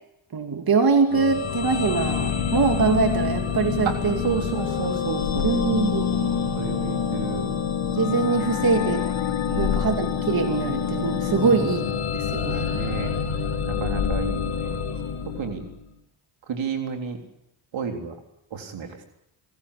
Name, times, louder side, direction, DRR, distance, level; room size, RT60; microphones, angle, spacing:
voice 1, 0.3-4.2 5.4-6.3 7.9-9.0 9.6-11.9 12.1-12.7, right 5 dB, 50° right, 5 dB, 2.7 m, -23 dB
sound 1, 1.1-15.8, left 7 dB, 90° left, 2.6 m, -26 dB
voice 2, 4.2-7.5 9.4-9.8 11.4-11.6 12.7-13.1 13.6-14.8 15.4-15.7 16.5-17.2 17.7-18.1 18.5-19.0, right 6 dB, 75° right, 4 dB, 3.7 m, -31 dB
27.0 x 16.0 x 8.5 m, 0.82 s
supercardioid pair, 55°, 46 cm